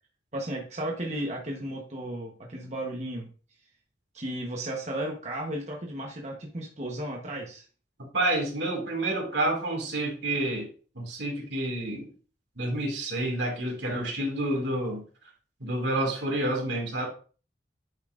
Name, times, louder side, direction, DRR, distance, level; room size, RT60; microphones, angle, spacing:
voice 1, 0.3-3.3 4.1-7.6, right 1 dB, 40° right, 0 dB, 1.2 m, -34 dB
voice 2, 8.0-10.7 11.0-12.1 12.6-15.0 15.6-17.1, right 1 dB, 80° right, 1 dB, 2.3 m, -29 dB
8.9 x 5.6 x 2.6 m, 0.38 s
head